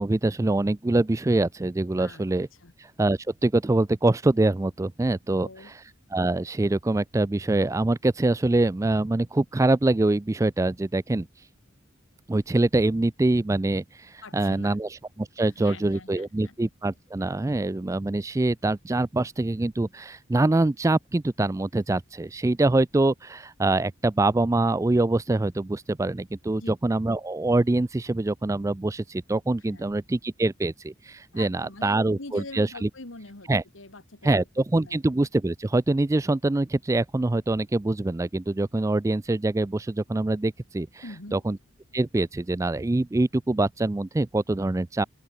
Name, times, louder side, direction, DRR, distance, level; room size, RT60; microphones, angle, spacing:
voice 1, 0.0-2.5 3.0-5.5 6.1-11.3 12.3-13.8 14.3-14.9 15.2-32.9 33.5-33.6 34.2-41.0 41.3-41.6 41.9-45.0, right 2 dB, 15° right, 0.3 m, -24 dB
voice 2, 5.3-5.8 14.2-14.8 15.4-16.5 26.6-26.7 29.6-30.0 31.3-35.0 41.0-41.4, left 2 dB, 80° left, 2.4 m, -44 dB
open air
head